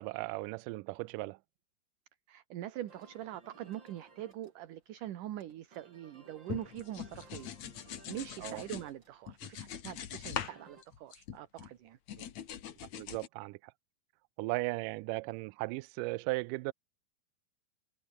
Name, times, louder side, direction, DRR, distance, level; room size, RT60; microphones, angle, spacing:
voice 1, 0.0-1.4 8.4-8.6 12.2-12.3 12.9-13.7 14.4-16.7, right 23 dB, 85° right, 1.9 m, -37 dB
voice 2, 2.3-7.5 8.1-12.0, right 12 dB, 65° right, 2.7 m, -43 dB
sound 1, 2.9-10.8, right 4 dB, 30° right, 4.4 m, -60 dB
sound 2, 6.5-8.9 9.3-10.6 10.8-11.7 12.1-13.3, left 9 dB, 55° left, 2.6 m, -42 dB
omnidirectional pair, 4.4 m